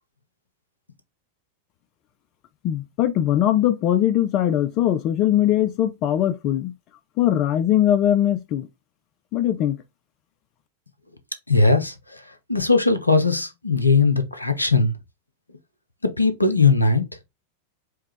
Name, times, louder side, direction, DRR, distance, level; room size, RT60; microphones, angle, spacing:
voice 1, 2.6-6.7 7.2-8.7 9.3-9.8, left 11 dB, 40° left, 0.5 m, -21 dB
voice 2, 11.5-12.2 12.5-14.9 16.0-17.0, left 3 dB, 85° left, 0.7 m, -19 dB
4.6 x 2.3 x 3.3 m
figure-of-eight pair, 90°, 0 cm